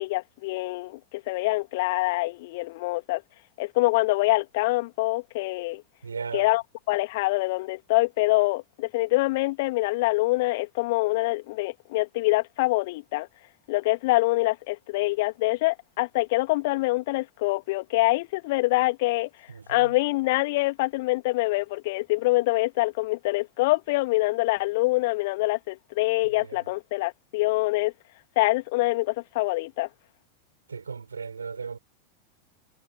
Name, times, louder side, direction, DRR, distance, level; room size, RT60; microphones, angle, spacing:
voice 1, 0.0-3.2 3.6-5.8 6.3-6.6 6.9-13.3 13.7-19.3 19.7-27.9 28.4-29.9, left 21 dB, 50° left, 2.4 m, -25 dB
voice 2, 6.0-6.5 19.5-19.9 26.5-26.6 30.7-31.8, right 5 dB, 75° right, 5.4 m, -36 dB
figure-of-eight pair, 90°, 0 cm